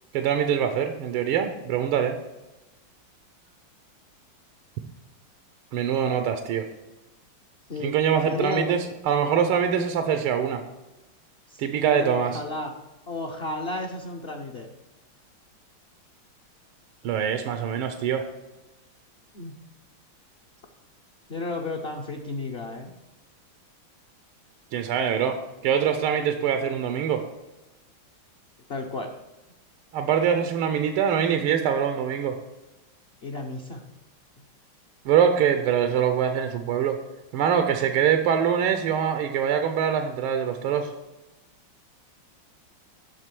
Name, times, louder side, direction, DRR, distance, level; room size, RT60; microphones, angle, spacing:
voice 1, 0.1-2.2 5.7-6.7 7.8-10.6 11.6-12.4 17.0-18.2 24.7-25.4 25.6-27.2 29.9-32.3 35.0-37.0 37.3-40.9, right 8 dB, 90° right, 7 dB, 1.6 m, -24 dB
voice 2, 8.2-8.7 9.8-9.9 11.5-12.7 13.1-14.7 19.3-19.6 21.3-22.9 28.7-29.1 33.2-33.8, left 2 dB, 60° left, 1 dB, 0.6 m, -32 dB
7.8 x 6.1 x 7.5 m, 1.1 s
omnidirectional pair, 2.3 m